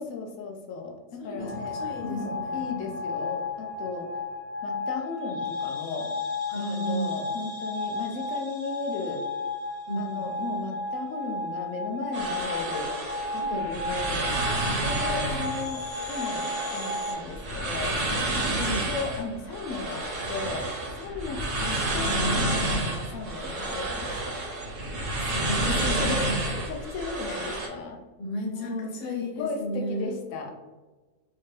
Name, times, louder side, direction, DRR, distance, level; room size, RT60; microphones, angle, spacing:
voice 1, 0.0-1.8 2.0-4.1 4.6-6.1 6.6-9.3 10.0-12.9 13.3-14.3 14.8-18.0 18.7-24.3 26.0-28.0 28.5-30.5, left 4 dB, 75° left, 2 dB, 1.0 m, -35 dB
voice 2, 1.2-2.7 6.5-7.2 9.9-10.3 13.4-13.6 14.8-15.2 18.3-18.9 22.2-22.4 25.1-26.4 28.2-30.1, equal, 35° left, -2 dB, 0.7 m, -34 dB
sound 1, 1.4-17.1, left 3 dB, 55° left, 1.2 m, -33 dB
sound 2, 12.1-27.7, right 2 dB, 70° right, 1.1 m, -30 dB
3.3 x 2.8 x 3.1 m, 1.2 s
omnidirectional pair, 1.5 m